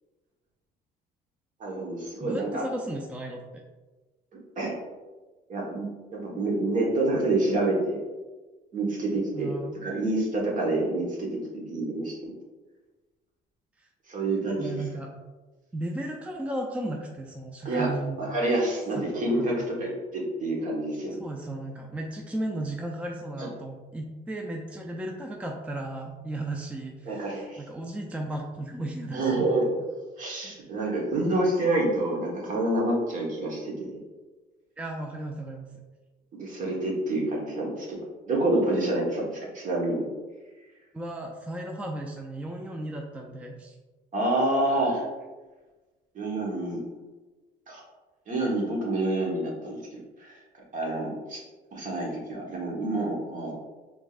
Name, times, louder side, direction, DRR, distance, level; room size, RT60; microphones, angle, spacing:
voice 1, 1.6-2.6 4.6-4.7 5.5-8.0 8.7-9.5 9.8-12.3 14.1-14.8 17.6-17.9 18.2-21.2 23.4-23.5 27.1-27.6 29.1-29.7 30.2-34.0 36.3-38.0 38.3-40.1 44.1-45.0 46.1-46.8 47.7-47.8 48.3-50.4 50.7-51.4 51.7-53.6, right 2 dB, 50° right, -2 dB, 1.3 m, -28 dB
voice 2, 2.2-3.6 9.3-9.8 13.8-13.9 14.6-15.1 15.7-18.2 18.9-19.0 19.4-19.7 21.1-29.7 34.8-35.7 40.9-43.7, right 1 dB, 10° right, 0 dB, 0.4 m, -35 dB
5.0 x 3.6 x 2.5 m, 1.2 s
cardioid pair, 110°, 17 cm